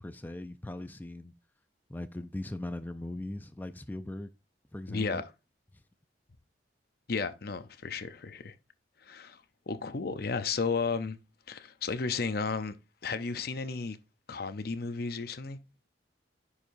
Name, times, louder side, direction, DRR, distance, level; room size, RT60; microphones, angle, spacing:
voice 1, 0.0-1.3 1.9-4.3 4.7-5.2, left 1 dB, 10° left, 0.4 m, -39 dB
voice 2, 4.9-5.3 7.1-8.5 9.1-9.4 9.7-11.2 11.5-12.7 13.0-14.0 14.3-15.6, left 4 dB, 55° left, 0.7 m, -33 dB
10.0 x 4.9 x 2.6 m
head